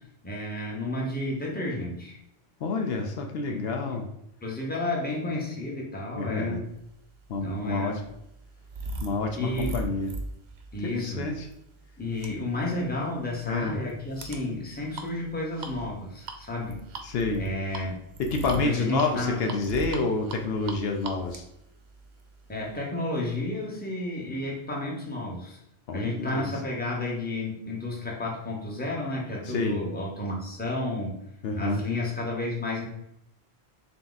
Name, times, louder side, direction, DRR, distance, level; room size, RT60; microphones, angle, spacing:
voice 1, 0.2-2.2 3.5-3.7 4.4-6.6 7.4-8.0 9.4-9.7 10.7-11.3 12.0-16.8 17.4-17.9 18.5-19.4 22.5-25.6 25.9-31.2 31.6-32.9, left 1 dB, 10° left, -3 dB, 0.8 m, -31 dB
voice 2, 2.6-4.1 6.2-6.6 7.3-8.0 9.0-10.1 10.8-11.5 13.5-13.8 17.0-17.4 18.2-21.4 25.9-26.5 29.5-29.8 31.4-31.8, left 3 dB, 75° left, 3 dB, 0.8 m, -28 dB
sound 1, 7.1-22.8, right 3 dB, 90° right, 0.9 m, -40 dB
3.7 x 2.8 x 3.9 m, 0.77 s
omnidirectional pair, 1.1 m